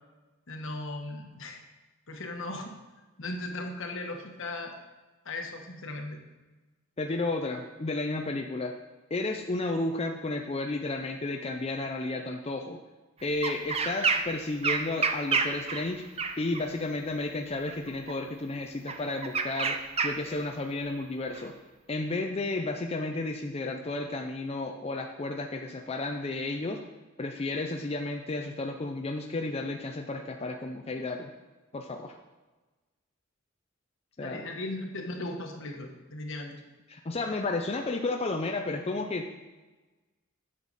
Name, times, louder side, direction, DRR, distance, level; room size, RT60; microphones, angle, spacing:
voice 1, 0.5-1.6 2.1-2.8 3.2-4.7 5.2-6.2 34.2-36.6, left 2 dB, 65° left, 3 dB, 1.3 m, -37 dB
voice 2, 7.0-8.7 9.1-12.8 13.2-16.0 16.4-19.8 20.0-21.5 21.9-26.8 27.2-31.3 31.7-32.2 34.2-34.4 36.9-39.3, left 2 dB, 30° left, 3 dB, 0.5 m, -32 dB
sound 1, 13.4-14.4 14.6-16.7 17.7-18.1 18.9-20.4 21.3-21.4, right 5 dB, 30° right, 0.6 m, -29 dB
10.5 x 6.7 x 4.1 m, 1.2 s
head